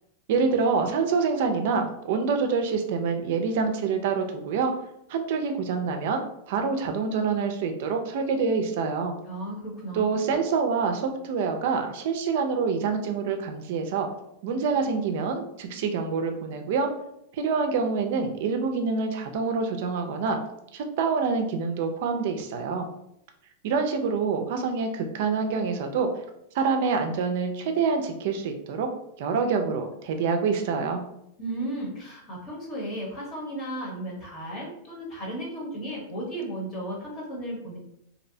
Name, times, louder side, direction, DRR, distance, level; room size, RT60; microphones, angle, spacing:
voice 1, 0.3-4.7 5.1-9.1 9.9-14.1 14.4-16.9 17.3-20.4 20.7-22.9 23.6-26.1 26.5-28.9 29.2-31.0, right 5 dB, 60° right, 5 dB, 0.3 m, -26 dB
voice 2, 9.2-10.1 31.4-37.8, right 1 dB, 30° left, -3 dB, 0.9 m, -34 dB
2.6 x 2.0 x 2.6 m, 0.79 s
supercardioid pair, 150°, 0 cm